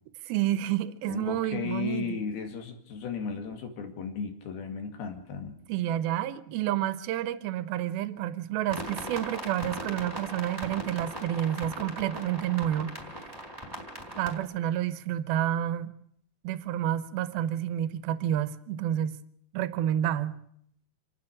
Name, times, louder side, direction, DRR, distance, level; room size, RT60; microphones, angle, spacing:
voice 1, 0.2-2.2 5.7-12.9 14.2-15.9 16.4-19.2 19.5-20.4, right 11 dB, 80° right, 2.8 m, -29 dB
voice 2, 1.1-5.6, left 6 dB, 85° left, 4.1 m, -35 dB
sound 1, 8.7-14.4, right 1 dB, 5° right, 3.7 m, -39 dB
28.0 x 9.4 x 9.9 m
omnidirectional pair, 4.3 m